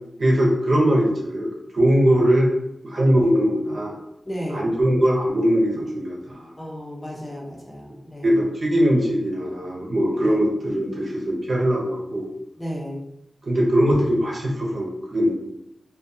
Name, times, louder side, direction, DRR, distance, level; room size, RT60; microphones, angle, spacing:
voice 1, 0.2-2.5 2.8-4.0 4.5-6.5 8.2-12.3 13.4-15.3, equal, 65° right, -3 dB, 0.7 m, -21 dB
voice 2, 4.3-4.6 6.6-8.4 10.3-10.4 12.6-13.0, equal, 25° left, -4 dB, 0.8 m, -33 dB
2.3 x 2.3 x 2.6 m, 0.84 s
cardioid pair, 55°, 0 cm